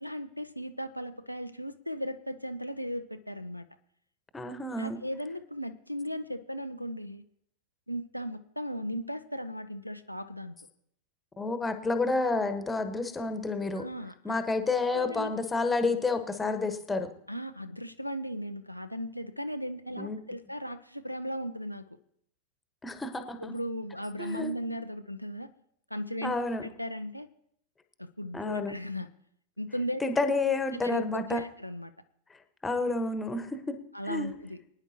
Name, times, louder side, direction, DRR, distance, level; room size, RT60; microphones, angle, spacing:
voice 1, 0.0-3.6 4.8-7.2 7.9-10.6 13.7-14.4 14.9-15.3 17.3-21.9 23.4-25.5 25.9-26.3 26.6-27.3 28.0-29.1 29.6-30.0 30.7-31.9 33.9-34.6, equal, 90° left, 8 dB, 0.5 m, -36 dB
voice 2, 4.3-5.0 11.4-13.8 14.2-17.1 20.0-20.2 22.8-23.5 24.2-24.5 26.2-26.6 28.3-28.7 30.0-31.4 32.6-33.8 34.1-34.3, left 3 dB, 10° left, 8 dB, 1.2 m, -30 dB
21.5 x 9.8 x 2.9 m, 0.70 s
figure-of-eight pair, 90°, 0 cm